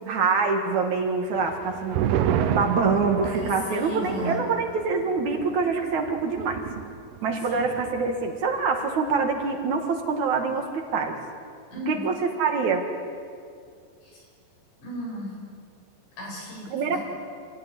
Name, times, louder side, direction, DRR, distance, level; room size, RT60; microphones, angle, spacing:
voice 1, 0.1-2.0 2.5-6.6 7.2-11.2 11.9-12.9 16.7-17.0, right 4 dB, 55° right, 3 dB, 2.3 m, -25 dB
sound 1, 1.3-8.3 8.6-8.7 9.1-9.5, right 9 dB, 70° right, 2.7 m, -31 dB
voice 2, 3.2-4.4 7.5-7.6 11.7-12.1 14.0-14.2 14.8-15.3 16.2-17.0, left 1 dB, 80° left, -2 dB, 9.5 m, -35 dB
26.0 x 15.5 x 9.8 m, 2.4 s
omnidirectional pair, 5.2 m